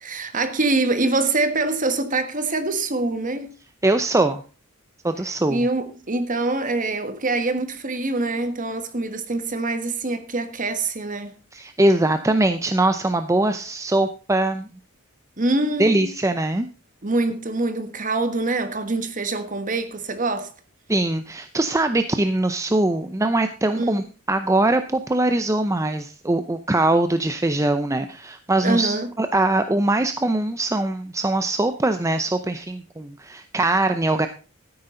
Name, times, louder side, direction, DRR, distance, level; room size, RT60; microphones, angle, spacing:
voice 1, 0.0-3.5 5.5-11.4 15.4-16.1 17.0-20.5 23.7-24.0 28.6-29.1, right 2 dB, 40° right, 1.4 m, -24 dB
voice 2, 3.8-4.4 5.0-5.7 11.5-14.7 15.8-16.7 20.9-34.3, right 2 dB, 15° right, 0.6 m, -22 dB
13.0 x 9.9 x 3.8 m
head